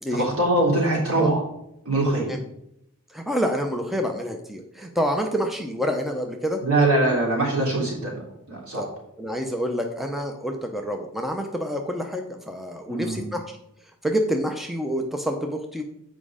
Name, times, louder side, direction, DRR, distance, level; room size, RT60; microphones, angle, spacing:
voice 1, 0.1-1.4 1.8-2.3 6.6-8.9 12.9-13.3, right 2 dB, 80° right, -3 dB, 3.3 m, -23 dB
voice 2, 3.1-6.6 8.7-8.9 9.2-13.4 14.0-15.8, equal, ahead, 3 dB, 0.5 m, -27 dB
7.5 x 5.1 x 4.9 m, 0.78 s
head